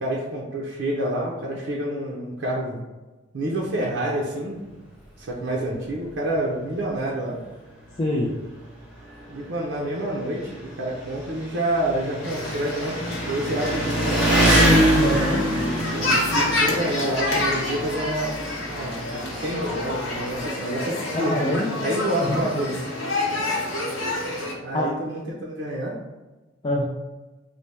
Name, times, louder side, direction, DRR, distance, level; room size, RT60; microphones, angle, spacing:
voice 1, 0.0-2.8 3.3-4.6 5.2-7.4 9.3-14.3 15.4-18.3 18.7-21.4 21.8-22.8 23.4-23.7 24.6-26.0, right 1 dB, 70° right, -3 dB, 0.5 m, -28 dB
Engine, 5.9-6.0 6.3-6.4 7.4-7.5 7.7-20.4, right 1 dB, 5° right, 1.0 m, -25 dB
voice 2, 8.0-8.3 15.0-15.4 21.1-21.8 22.2-22.4 24.7-24.9 26.6-26.8, left 1 dB, 25° left, -3 dB, 0.4 m, -24 dB
sound 1, 12.2-24.5, left 2 dB, 75° left, 0.9 m, -28 dB
3.3 x 2.0 x 4.1 m, 1.2 s
head